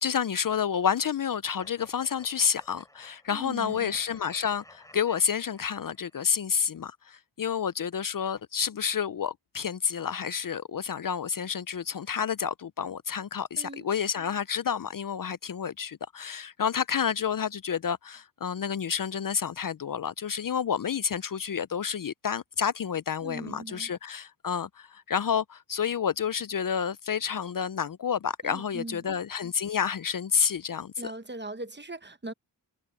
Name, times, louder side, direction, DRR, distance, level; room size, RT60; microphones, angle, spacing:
voice 1, 0.0-31.1, left 7 dB, 50° left, 0.6 m, -29 dB
sound 1, 1.6-6.2, left 1 dB, 10° left, 4.0 m, -56 dB
voice 2, 3.3-3.9 13.6-13.9 23.2-23.9 28.4-29.1 31.0-32.3, right 2 dB, 25° right, 1.2 m, -40 dB
cardioid pair, 50°, 41 cm